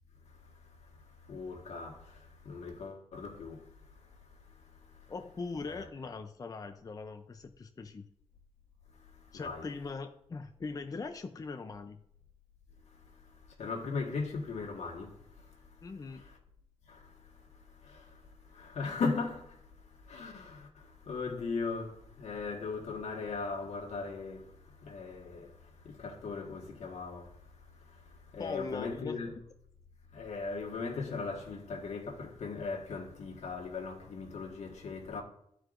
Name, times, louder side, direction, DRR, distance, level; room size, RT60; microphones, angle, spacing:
voice 1, 1.3-2.0 2.4-3.6 5.6-5.9 9.3-9.7 13.6-15.1 16.9-17.0 17.9-18.0 18.5-19.5 20.1-20.7 21.1-24.4 24.8-25.5 25.8-27.3 28.3-29.3 30.1-35.2, left 4 dB, 75° left, 1.6 m, -38 dB
voice 2, 5.1-8.1 9.3-12.0 15.8-16.2 28.4-29.2, left 4 dB, 30° left, 0.5 m, -41 dB
12.5 x 4.6 x 2.5 m
cardioid pair, 85°, 11 cm